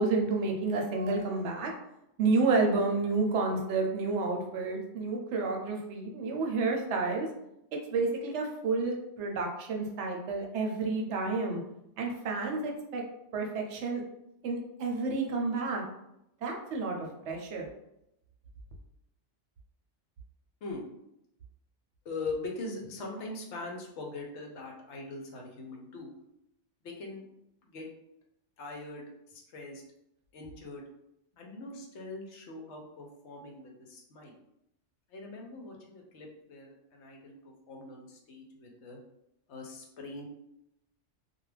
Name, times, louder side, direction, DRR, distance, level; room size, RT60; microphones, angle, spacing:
voice 1, 0.0-1.7 2.2-7.3 7.9-11.6 12.0-13.0 13.3-14.0 14.4-15.8 16.4-17.7, right 3 dB, 70° right, 1 dB, 0.8 m, -30 dB
voice 2, 22.0-26.1 26.8-27.2 27.6-27.9 28.6-29.8 30.3-30.8 31.3-34.3 35.1-39.0 39.5-40.3, left 3 dB, 70° left, 0 dB, 0.9 m, -42 dB
2.3 x 2.2 x 3.1 m, 0.83 s
omnidirectional pair, 1.3 m